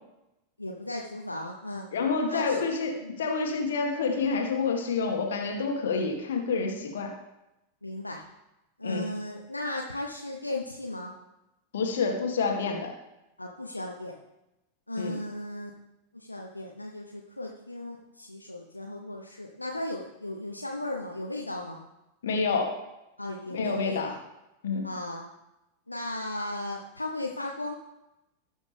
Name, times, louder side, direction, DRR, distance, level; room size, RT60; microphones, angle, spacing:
voice 1, 0.6-1.9 2.2-2.6 3.0-3.3 7.8-8.2 8.8-11.1 13.4-14.1 14.9-15.7 16.1-21.8 23.2-24.2 24.8-25.3 25.9-27.7, left 1 dB, 85° left, 0 dB, 0.9 m, -36 dB
voice 2, 1.9-7.1 8.8-9.1 11.7-12.9 15.0-15.1 22.2-22.8 23.5-24.1 24.6-24.9, left 4 dB, 60° left, 3 dB, 1.9 m, -28 dB
18.5 x 6.3 x 3.5 m, 0.94 s
figure-of-eight pair, 90°, 0 cm